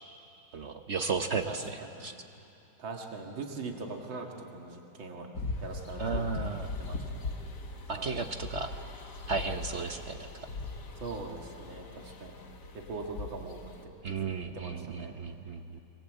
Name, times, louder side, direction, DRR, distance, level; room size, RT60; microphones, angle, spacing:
voice 1, 0.5-2.1 6.0-6.7 7.9-8.7 9.3-10.3 14.0-15.8, right 4 dB, 50° right, 6 dB, 0.8 m, -34 dB
voice 2, 1.5-2.0 2.8-5.3 5.6-6.3 6.5-7.0 8.0-8.2 11.0-12.3 12.7-15.1, right 3 dB, 80° right, 1 dB, 2.7 m, -41 dB
sound 1, 5.3-13.8, left 3 dB, 55° left, 2.1 m, -40 dB
26.0 x 22.0 x 8.0 m, 2.8 s
omnidirectional pair, 2.1 m